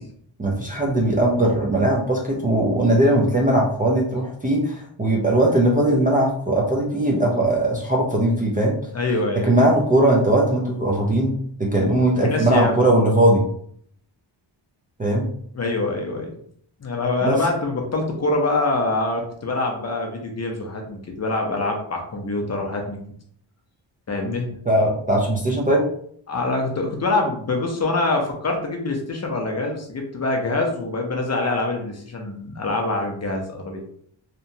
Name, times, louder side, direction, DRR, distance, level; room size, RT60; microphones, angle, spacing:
voice 1, 0.4-8.8 9.4-13.4 15.0-15.3 17.2-17.4 24.7-25.8, right 1 dB, 20° right, -3 dB, 0.3 m, -19 dB
voice 2, 8.9-9.5 11.8-11.9 12.2-12.9 15.5-16.3 16.8-23.0 24.1-24.5 26.3-33.8, left 2 dB, 35° left, 2 dB, 0.5 m, -25 dB
2.8 x 2.2 x 2.6 m, 0.64 s
wide cardioid pair, 145°, 45 cm